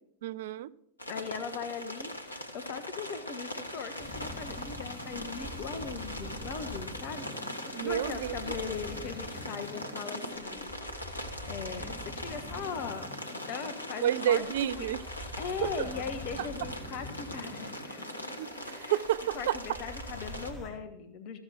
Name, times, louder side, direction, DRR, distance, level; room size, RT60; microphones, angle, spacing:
voice 1, 0.2-0.7 7.7-8.5 14.0-15.0 15.6-15.9 18.4-19.6, right 11 dB, 55° right, 0.3 m, -30 dB
sound 1, 1.0-20.5, left 1 dB, 80° left, 1.0 m, -41 dB
voice 2, 1.0-7.3 7.6-10.7 11.1-13.1 13.5-14.4 14.8-14.9 15.2-18.1 18.7-18.9 19.3-21.4, left 6 dB, 40° left, 1.0 m, -39 dB
sound 2, 4.0-20.7, equal, ahead, 4.3 m, -44 dB
14.0 x 6.7 x 5.9 m
figure-of-eight pair, 90°, 0 cm